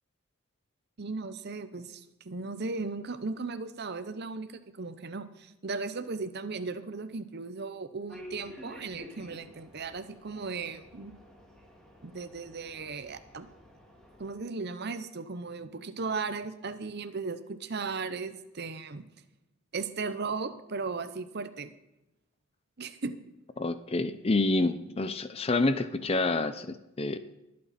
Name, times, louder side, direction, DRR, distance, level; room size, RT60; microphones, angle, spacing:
voice 1, 1.0-11.1 12.0-13.5 14.2-19.1 19.7-21.7 22.8-23.1, right 4 dB, 50° right, 11 dB, 0.8 m, -36 dB
sound 1, 8.1-14.3, left 1 dB, 5° left, 2.3 m, -51 dB
voice 2, 23.6-27.2, left 2 dB, 25° left, 12 dB, 0.5 m, -28 dB
21.5 x 8.6 x 4.3 m, 0.94 s
head